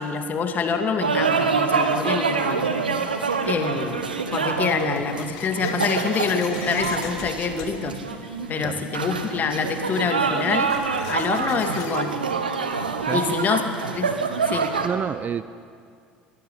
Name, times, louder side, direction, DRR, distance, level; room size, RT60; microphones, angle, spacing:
voice 1, 0.0-2.7 3.5-4.1 4.3-8.0 8.5-10.7 11.1-12.2 13.1-13.6 13.9-14.1 14.5-14.7, left 5 dB, 35° left, 6 dB, 2.5 m, -26 dB
sound 1, 1.0-14.9, right 5 dB, 80° right, 1.4 m, -26 dB
sound 2, 2.6-12.0, left 7 dB, 60° left, 2.4 m, -41 dB
voice 2, 13.0-13.6 14.8-15.4, right 7 dB, 35° right, 15 dB, 0.7 m, -29 dB
22.5 x 18.0 x 8.6 m, 2.3 s
figure-of-eight pair, 60°, 5 cm